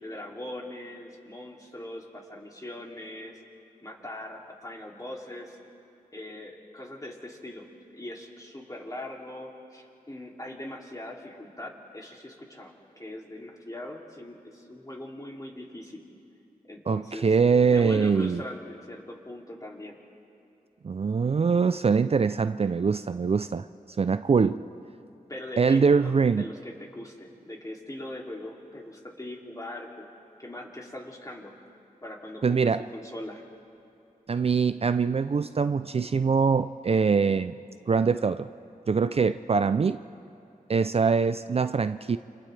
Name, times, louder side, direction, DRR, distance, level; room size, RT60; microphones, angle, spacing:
voice 1, 0.0-3.4 3.8-5.6 6.1-7.7 7.9-16.0 16.7-17.3 17.7-20.0 25.3-30.1 30.4-31.5 32.0-33.4, left 1 dB, 25° left, 2.8 m, -41 dB
voice 2, 16.9-18.4 20.8-23.7 24.0-24.6 25.6-26.4 32.4-32.8 34.3-37.6 37.9-38.5 38.9-40.0 40.7-42.2, right 5 dB, 45° right, 0.4 m, -23 dB
29.0 x 27.5 x 3.4 m
wide cardioid pair, 75°, 15 cm